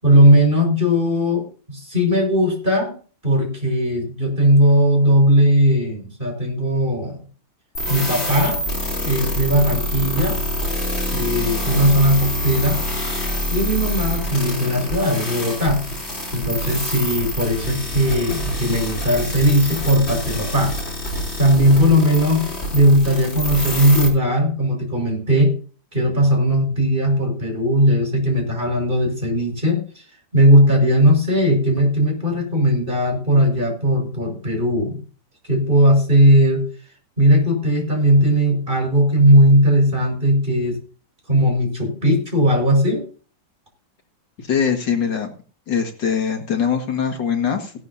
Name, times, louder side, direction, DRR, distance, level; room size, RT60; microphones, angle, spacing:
voice 1, 0.0-2.9 3.2-7.2 7.9-8.6 9.0-10.4 11.1-12.8 13.5-15.8 16.3-20.7 21.4-22.4 22.7-25.5 25.9-29.8 30.3-35.0 35.5-36.7 37.2-40.8 41.3-43.0, equal, 25° right, 2 dB, 5.5 m, -17 dB
sound 1, 7.7-24.1, equal, 30° left, 4.0 m, -26 dB
voice 2, 44.4-45.3 45.7-47.7, left 7 dB, 70° left, 5 dB, 2.4 m, -22 dB
16.5 x 12.0 x 2.7 m, 0.39 s
omnidirectional pair, 2.1 m